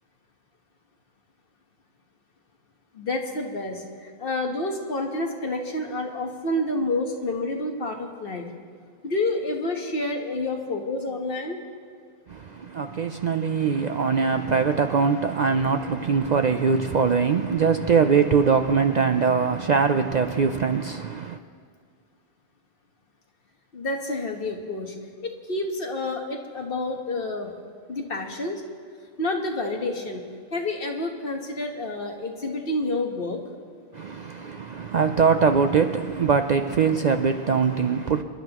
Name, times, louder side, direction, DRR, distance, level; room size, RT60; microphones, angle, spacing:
voice 1, 2.9-8.5 9.0-11.6 23.7-24.9 25.2-27.5 27.9-28.6 29.2-30.2 30.5-33.4, left 2 dB, 55° left, 1.5 m, -29 dB
voice 2, 12.3-21.4 33.9-38.2, right 5 dB, 55° right, 0.5 m, -22 dB
27.0 x 11.5 x 3.0 m
omnidirectional pair, 1.1 m